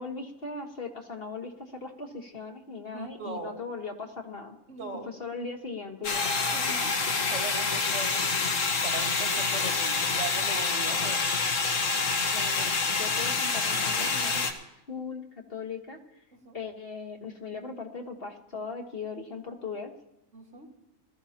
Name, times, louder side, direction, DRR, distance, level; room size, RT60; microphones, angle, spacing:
voice 1, 0.0-4.6 5.1-6.3 12.3-16.0 16.5-19.9, left 4 dB, 45° left, 2 dB, 1.6 m, -39 dB
voice 2, 2.9-3.6 4.7-5.1 6.5-11.3 16.3-16.6 20.3-20.7, right 4 dB, 65° right, -1 dB, 3.1 m, -40 dB
sound 1, 6.0-14.5, left 4 dB, 75° left, 1.7 m, -27 dB
20.5 x 13.5 x 2.9 m, 0.88 s
omnidirectional pair, 1.4 m